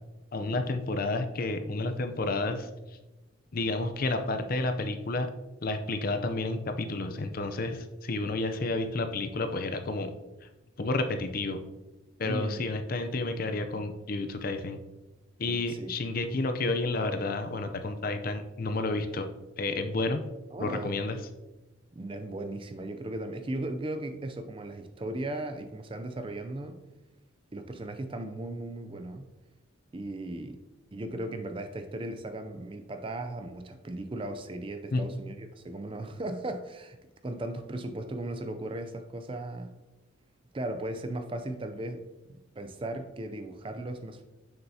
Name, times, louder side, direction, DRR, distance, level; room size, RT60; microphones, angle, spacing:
voice 1, 0.3-2.7 3.5-5.3 5.6-10.1 10.8-11.6 12.2-14.8 15.4-19.3 19.6-20.2 20.6-21.2 34.9-35.0, left 2 dB, 45° left, 7 dB, 0.5 m, -30 dB
voice 2, 12.2-12.6 15.5-15.9 20.5-20.9 21.9-26.8 27.5-29.3 29.9-30.6 30.9-37.0 37.2-39.7 40.5-44.2, right 1 dB, 25° right, 8 dB, 0.4 m, -37 dB
7.0 x 6.5 x 2.7 m, 1.1 s
head